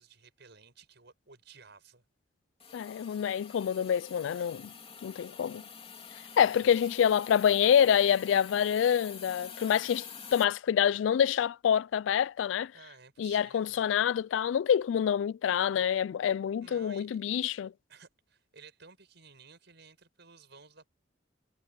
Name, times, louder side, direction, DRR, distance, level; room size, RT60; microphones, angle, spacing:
voice 1, 0.0-2.0 6.3-7.0 12.7-13.8 16.6-17.2 17.9-20.9, right 5 dB, 65° right, 6.8 m, -55 dB
Hiss, 2.6-10.4, left 6 dB, 30° left, 3.5 m, -47 dB
voice 2, 2.7-4.7 5.0-5.6 6.4-12.7 13.2-17.7, left 8 dB, 75° left, 0.3 m, -27 dB
head